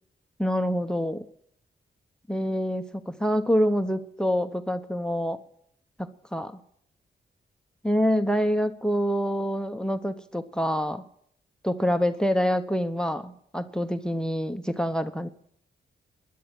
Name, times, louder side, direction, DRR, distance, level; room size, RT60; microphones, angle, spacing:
voice 1, 0.4-1.3 2.3-5.4 6.0-6.5 7.8-11.0 11.6-15.3, equal, 5° left, 10 dB, 0.9 m, -26 dB
12.5 x 10.5 x 8.8 m, 0.68 s
cardioid pair, 55°, 20 cm